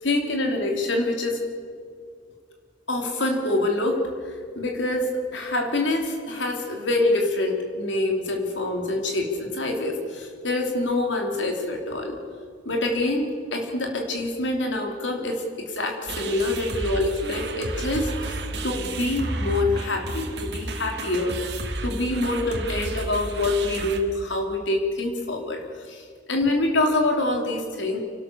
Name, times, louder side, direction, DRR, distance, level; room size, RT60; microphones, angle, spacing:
voice 1, 0.0-1.4 2.9-12.2 12.6-28.0, left 2 dB, 85° left, 2 dB, 3.2 m, -26 dB
sound 1, 16.1-24.0, right 2 dB, 65° right, 2.1 m, -32 dB
30.0 x 12.5 x 6.9 m, 2.2 s
head